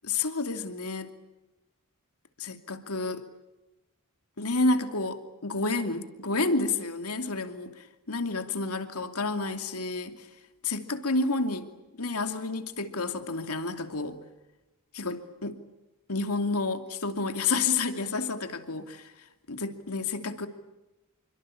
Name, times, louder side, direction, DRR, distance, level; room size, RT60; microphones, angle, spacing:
voice 1, 0.0-1.1 2.4-3.2 4.4-10.3 10.6-14.2 14.9-15.6 16.1-19.1 19.5-20.5, left 3 dB, 80° left, 7 dB, 2.8 m, -30 dB
28.0 x 24.0 x 8.7 m, 1.0 s
head